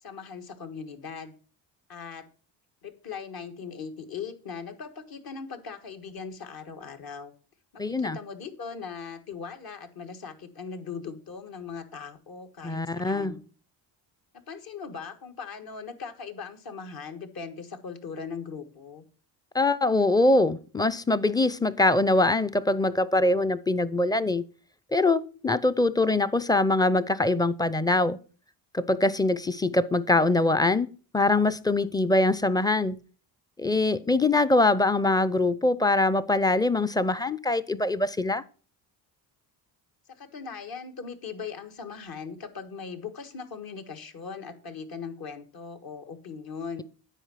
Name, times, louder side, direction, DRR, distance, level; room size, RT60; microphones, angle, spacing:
voice 1, 0.0-1.3 1.9-2.2 2.8-7.3 7.7-13.4 14.3-19.0 40.2-46.8, left 5 dB, 50° left, 1.6 m, -39 dB
voice 2, 7.8-8.2 12.6-13.4 19.5-24.4 24.9-28.2 28.7-30.9 31.1-33.0 33.6-38.4, left 2 dB, 10° left, 0.5 m, -23 dB
9.1 x 4.7 x 5.6 m
supercardioid pair, 70°, 45 cm